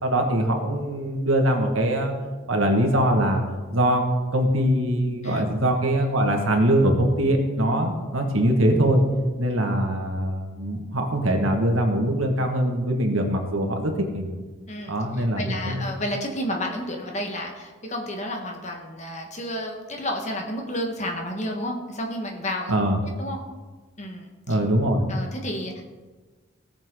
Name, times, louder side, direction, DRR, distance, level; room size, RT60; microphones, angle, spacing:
voice 1, 0.0-2.1 2.5-3.4 3.7-4.0 4.3-9.0 9.4-14.3 14.9-15.8 22.7-23.0 24.5-25.1, right 1 dB, 85° right, 3 dB, 1.8 m, -22 dB
voice 2, 14.7-22.7 23.2-23.4 24.0-24.6 25.1-25.8, left 1 dB, 35° left, 2 dB, 1.5 m, -31 dB
18.0 x 7.3 x 3.8 m, 1.3 s
head